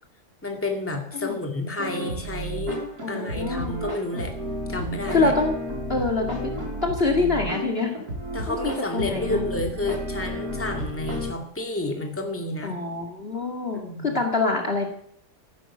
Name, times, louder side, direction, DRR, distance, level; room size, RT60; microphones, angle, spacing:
voice 1, 0.4-4.3 4.7-5.3 8.3-12.8 13.7-14.2, left 2 dB, 10° left, 2 dB, 2.3 m, -30 dB
sound 1, 1.8-11.3, equal, 60° right, 6.6 m, -32 dB
voice 2, 3.0-3.7 5.1-5.5 5.9-6.4 6.8-7.9 8.5-9.5 12.6-14.8, left 3 dB, 35° left, 4 dB, 2.2 m, -25 dB
15.0 x 11.0 x 7.3 m, 0.65 s
omnidirectional pair, 1.8 m